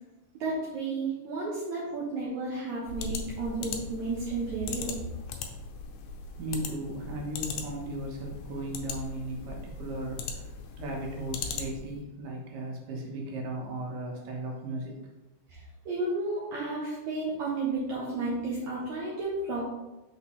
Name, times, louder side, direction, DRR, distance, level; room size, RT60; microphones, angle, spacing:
voice 1, 0.4-5.0 15.5-15.6 15.9-19.7, right 3 dB, 65° right, -6 dB, 2.3 m, -32 dB
sound 1, 2.8-12.0, left 4 dB, 75° left, 1.9 m, -39 dB
voice 2, 6.4-10.2 10.8-14.9, right 1 dB, 85° right, -1 dB, 3.0 m, -36 dB
6.1 x 5.5 x 3.1 m, 0.99 s
omnidirectional pair, 3.9 m